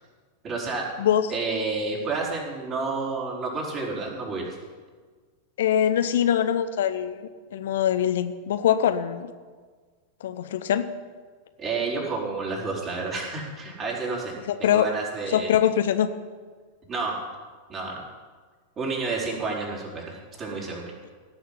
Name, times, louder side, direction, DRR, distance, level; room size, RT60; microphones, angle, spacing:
voice 1, 0.4-0.8 1.3-4.5 11.6-14.3 14.6-15.6 16.9-17.2 17.7-18.0 18.8-20.9, right 3 dB, 30° right, -2 dB, 4.7 m, -30 dB
voice 2, 5.6-9.3 10.2-10.9 14.6-14.9 15.3-16.1, left 10 dB, 60° left, 11 dB, 0.8 m, -23 dB
17.5 x 6.7 x 9.6 m, 1.5 s
figure-of-eight pair, 90°, 0 cm